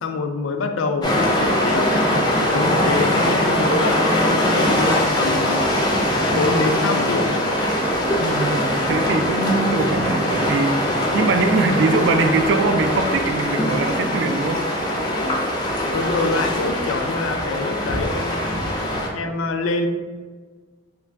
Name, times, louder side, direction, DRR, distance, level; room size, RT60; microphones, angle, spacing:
voice 1, 0.0-1.9 2.4-5.7 6.3-7.4 15.9-18.6 19.1-19.9, left 3 dB, 90° left, 6 dB, 0.4 m, -25 dB
sound 1, 1.0-19.1, left 1 dB, 20° left, 0.4 m, -21 dB
voice 2, 8.2-14.6, right 3 dB, 65° right, 7 dB, 0.3 m, -22 dB
3.0 x 2.5 x 3.3 m, 1.5 s
head